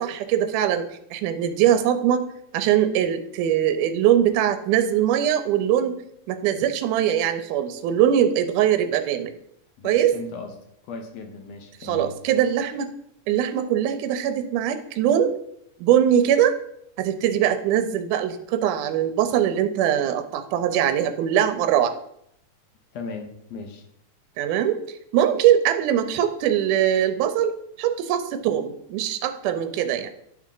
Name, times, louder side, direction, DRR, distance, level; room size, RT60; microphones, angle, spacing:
voice 1, 0.0-2.3 2.5-6.0 6.3-9.3 9.8-10.1 11.8-12.9 13.3-15.3 15.8-16.5 17.0-21.9 24.4-24.8 25.1-30.1, right 10 dB, 85° right, 9 dB, 2.1 m, -22 dB
voice 2, 9.8-10.5 10.8-12.2 22.9-23.9, left 4 dB, 70° left, 4 dB, 1.8 m, -37 dB
11.0 x 3.6 x 3.8 m, 0.74 s
omnidirectional pair, 3.6 m